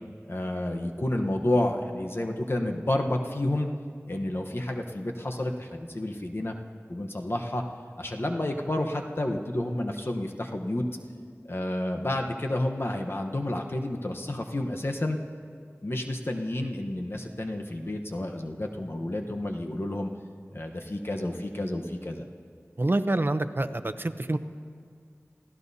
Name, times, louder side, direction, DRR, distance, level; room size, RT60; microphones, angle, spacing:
voice 1, 0.3-3.7 4.1-6.5 6.9-7.6 8.0-10.8 11.4-15.2 15.8-20.1 20.5-22.2, left 1 dB, 50° left, 2 dB, 1.0 m, -30 dB
voice 2, 22.8-24.4, right 2 dB, 45° right, 10 dB, 0.7 m, -27 dB
30.0 x 15.5 x 2.8 m, 2.1 s
wide cardioid pair, 50°, 5 cm